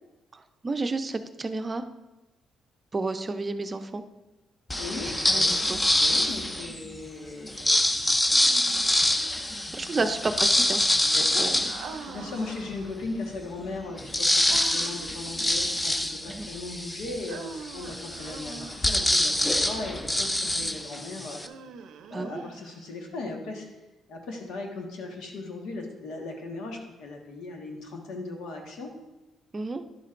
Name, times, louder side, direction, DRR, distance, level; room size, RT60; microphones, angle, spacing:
voice 1, 0.3-1.9 2.9-4.0 5.0-5.8 9.7-10.8 11.4-11.7 16.3-16.5 22.1-22.4 29.5-29.8, right 3 dB, 30° right, 8 dB, 0.5 m, -31 dB
sound 1, 4.7-6.9 7.4-12.6 13.1-13.2 13.5-21.5, left 1 dB, 15° left, 0.6 m, -25 dB
voice 2, 4.8-5.6 6.0-7.8 9.7-10.1 11.1-11.5 11.7-21.4 22.1-23.7 24.1-28.9, left 3 dB, 85° left, 2 dB, 1.4 m, -38 dB
Human voice, 8.3-9.2 11.6-13.0 14.5-15.3 17.3-19.1 21.3-22.9, right 5 dB, 80° right, 0.5 m, -43 dB
11.0 x 7.5 x 2.5 m, 1.1 s
cardioid pair, 90°, 0 cm